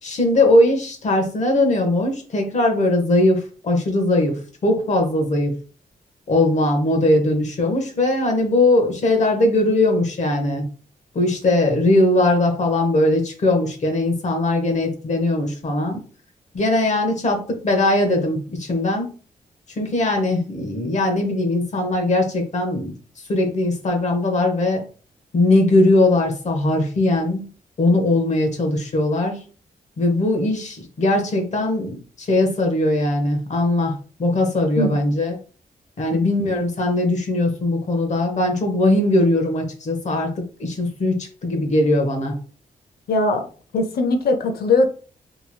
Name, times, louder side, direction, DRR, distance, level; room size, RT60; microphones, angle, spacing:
voice 1, 0.0-5.5 6.3-10.7 11.1-16.0 16.5-19.1 19.7-22.9 23.3-24.8 25.3-27.4 27.8-29.4 30.0-35.3 36.0-42.4, left 2 dB, 50° left, 0.8 m, -20 dB
voice 2, 43.1-43.5 43.7-44.9, left 2 dB, 80° left, 0.6 m, -20 dB
2.9 x 2.8 x 2.2 m
wide cardioid pair, 125°, 16 cm